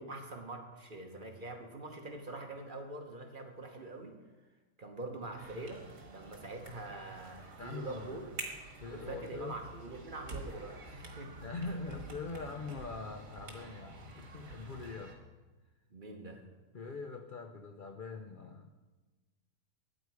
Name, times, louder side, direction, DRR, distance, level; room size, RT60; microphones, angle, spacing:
voice 1, 0.0-4.2 4.8-8.3 8.9-11.4 15.9-16.4, right 2 dB, 35° right, 3 dB, 1.1 m, -44 dB
sound 1, 5.4-15.1, right 2 dB, 55° right, 2.0 m, -48 dB
voice 2, 7.4-8.3 8.8-9.6 11.4-15.2 16.7-18.7, left 4 dB, 55° left, 5 dB, 0.5 m, -43 dB
13.0 x 8.8 x 4.8 m, 1.2 s
omnidirectional pair, 1.6 m